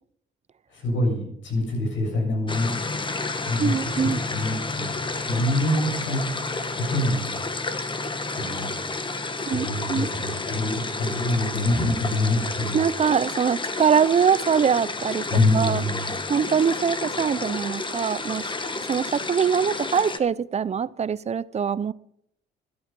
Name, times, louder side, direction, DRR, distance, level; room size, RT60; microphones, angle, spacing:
voice 1, 0.7-2.7 3.4-3.7 4.0-4.9 5.3-6.2 6.7-7.4 8.4-8.7 9.5-12.8 15.3-16.1, left 1 dB, 70° left, 1 dB, 7.3 m, -25 dB
sound 1, 2.5-20.2, left 3 dB, 25° left, 1.3 m, -31 dB
voice 2, 3.6-4.2 9.5-10.1 12.7-15.2 15.5-15.8 16.3-18.5 18.9-21.9, right 7 dB, 35° right, 19 dB, 0.5 m, -23 dB
13.0 x 11.5 x 5.4 m, 0.71 s
cardioid pair, 90°, 20 cm